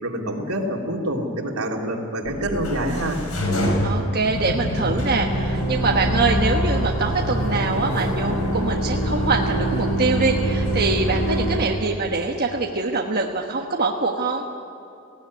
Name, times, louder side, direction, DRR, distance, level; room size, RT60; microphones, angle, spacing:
voice 1, 0.0-3.2, right 1 dB, 80° right, 0 dB, 3.1 m, -26 dB
sound 1, 2.2-11.6, equal, 90° left, 4.8 m, -24 dB
voice 2, 3.8-14.4, right 3 dB, 45° right, 0 dB, 1.3 m, -24 dB
19.0 x 17.0 x 9.6 m, 2.6 s
head